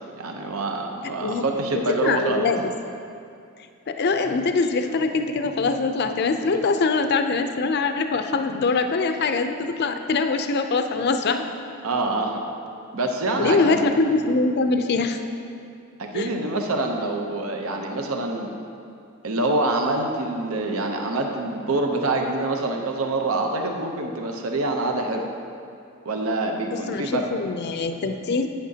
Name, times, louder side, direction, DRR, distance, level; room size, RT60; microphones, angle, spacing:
voice 1, 0.2-2.5 11.8-12.4 12.9-13.8 16.0-18.5 19.2-25.2 26.0-27.2, right 2 dB, 80° right, 2 dB, 0.8 m, -26 dB
voice 2, 2.0-2.7 3.9-11.4 13.4-15.2 16.1-16.3 26.7-28.5, left 3 dB, 50° left, 7 dB, 0.5 m, -23 dB
11.0 x 8.9 x 2.8 m, 2.5 s
head